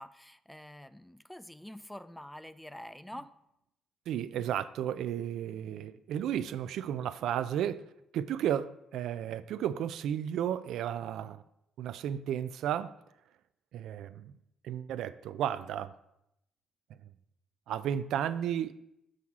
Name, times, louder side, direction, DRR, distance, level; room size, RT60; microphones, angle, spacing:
voice 1, 0.0-3.3, left 1 dB, 5° left, 0.3 m, -46 dB
voice 2, 4.1-7.9 8.1-11.4 11.8-12.9 13.7-14.3 14.6-15.9 17.7-18.7, right 10 dB, 80° right, 0.3 m, -33 dB
6.2 x 5.6 x 3.6 m
cardioid pair, 90°, 0 cm